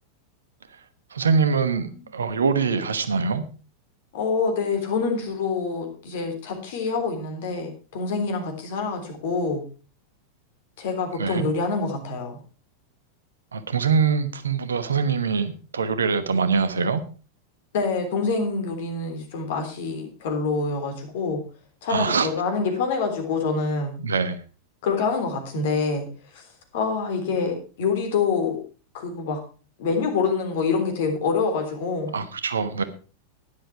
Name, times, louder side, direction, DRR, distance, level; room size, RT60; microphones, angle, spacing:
voice 1, 1.1-3.4 11.2-11.5 13.5-17.0 21.9-22.3 24.0-24.4 32.1-32.8, right 5 dB, 70° right, 12 dB, 1.1 m, -23 dB
voice 2, 4.1-9.6 10.8-12.4 17.7-21.4 21.8-24.0 24.8-26.1 26.3-26.5 26.7-28.6 28.9-29.4 29.8-32.2, left 4 dB, 55° left, 5 dB, 3.4 m, -26 dB
11.5 x 10.5 x 4.7 m, 0.36 s
figure-of-eight pair, 90°, 0 cm